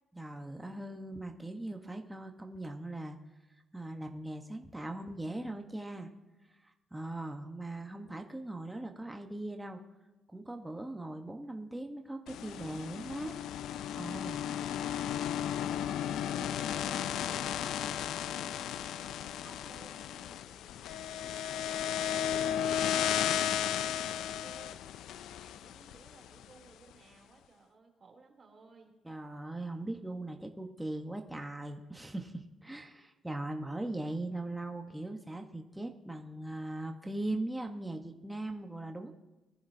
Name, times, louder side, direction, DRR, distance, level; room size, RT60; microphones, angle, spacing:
voice 1, 0.2-3.2 3.7-6.1 6.9-9.8 10.3-13.4 14.0-14.5 29.0-39.1, right 1 dB, 10° right, 3 dB, 1.1 m, -40 dB
sound 1, 12.3-26.4, left 10 dB, 80° left, 0.4 m, -34 dB
voice 2, 14.4-15.3 15.8-28.9, right 4 dB, 40° right, 1 dB, 3.0 m, -59 dB
21.0 x 10.0 x 2.8 m, 1.1 s
cardioid pair, 90°, 0 cm